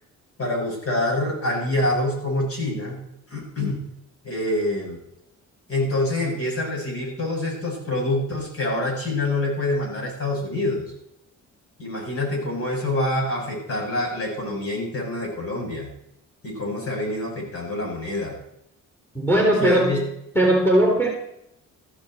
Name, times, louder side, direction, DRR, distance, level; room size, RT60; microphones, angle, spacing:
voice 1, 0.4-3.0 3.3-3.8 4.2-5.0 5.7-10.9 11.8-15.9 16.4-18.4 19.6-20.0, left 1 dB, 50° left, -1 dB, 7.2 m, -26 dB
voice 2, 19.1-20.0 20.3-21.1, right 1 dB, 10° left, 0 dB, 4.1 m, -18 dB
14.5 x 13.0 x 4.5 m, 0.78 s
cardioid pair, 90°, 30 cm